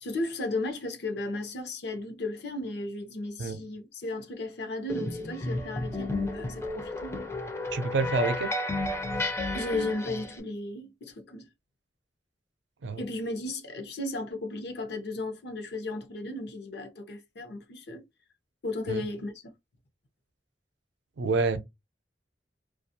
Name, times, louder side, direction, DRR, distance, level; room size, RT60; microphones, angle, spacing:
voice 1, 0.0-7.3 9.5-11.5 13.0-18.0 18.6-19.3, left 2 dB, 65° left, 0.7 m, -35 dB
sound 1, 4.9-10.4, left 1 dB, 15° left, 0.4 m, -32 dB
voice 2, 7.7-8.6 12.8-13.0 18.9-19.1 21.2-21.6, right 3 dB, 85° right, 0.5 m, -28 dB
2.4 x 2.3 x 2.7 m
head